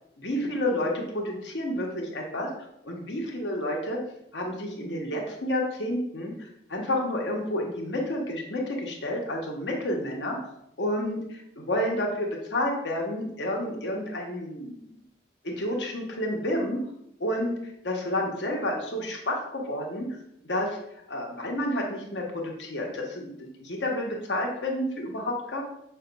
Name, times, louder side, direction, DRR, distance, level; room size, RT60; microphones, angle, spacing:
voice 1, 0.2-2.5 2.8-4.0 4.3-10.4 10.8-14.9 15.4-16.8 17.2-17.6 17.8-20.1 20.4-20.8 21.1-25.6, left 1 dB, 85° left, 0 dB, 1.0 m, -30 dB
5.6 x 2.3 x 3.9 m, 0.78 s
head